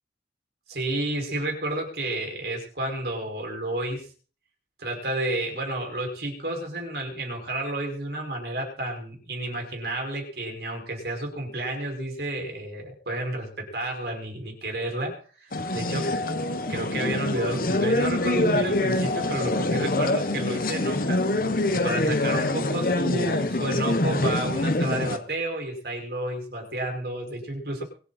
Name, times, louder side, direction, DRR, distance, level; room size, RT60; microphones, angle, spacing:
voice 1, 0.7-4.1 4.8-16.1 16.7-21.2 21.7-27.8, right 1 dB, 65° right, 1 dB, 5.9 m, -31 dB
sound 1, 15.5-25.2, left 2 dB, 50° left, 1.1 m, -25 dB
24.0 x 8.6 x 4.4 m, 0.42 s
head